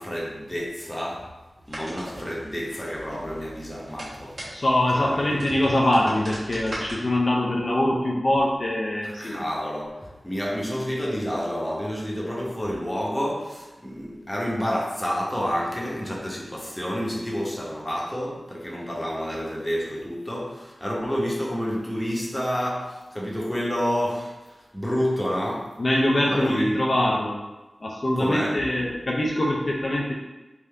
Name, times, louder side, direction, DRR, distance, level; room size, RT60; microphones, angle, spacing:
voice 1, 0.0-1.3 1.7-4.4 4.9-5.4 9.0-25.7 26.3-26.8 28.2-28.9, equal, 10° left, -3 dB, 0.9 m, -29 dB
sound 1, 1.7-6.9, right 1 dB, 75° right, 1.4 m, -39 dB
voice 2, 4.5-9.4 25.8-27.4 27.8-30.1, left 1 dB, 55° left, -2 dB, 0.5 m, -23 dB
3.5 x 2.6 x 3.3 m, 1.1 s
wide cardioid pair, 70°, 0 cm